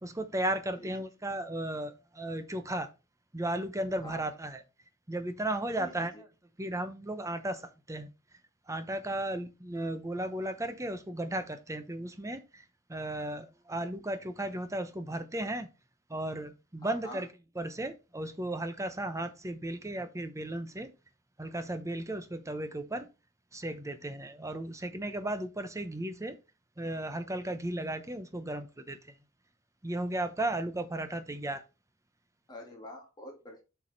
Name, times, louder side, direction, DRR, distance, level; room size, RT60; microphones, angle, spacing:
voice 1, 0.0-2.9 3.3-4.6 5.1-6.1 6.6-8.1 8.7-12.6 12.9-15.7 16.1-17.3 17.6-20.9 21.4-23.1 23.5-26.4 26.8-29.0 29.8-31.6, right 1 dB, 15° right, 0.9 m, -35 dB
voice 2, 5.8-6.2 16.8-17.2 32.5-33.6, left 1 dB, 20° left, 2.1 m, -46 dB
7.6 x 4.7 x 4.1 m
head